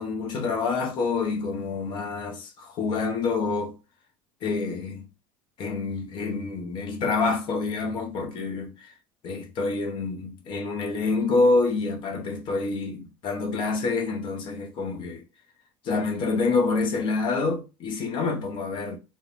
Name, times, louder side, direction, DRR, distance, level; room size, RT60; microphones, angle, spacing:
voice 1, 0.0-3.7 4.4-5.1 5.6-8.9 9.2-15.2 15.8-19.0, left 3 dB, 45° left, 0.6 m, -27 dB
2.4 x 2.1 x 2.9 m
supercardioid pair, 125°, 12 cm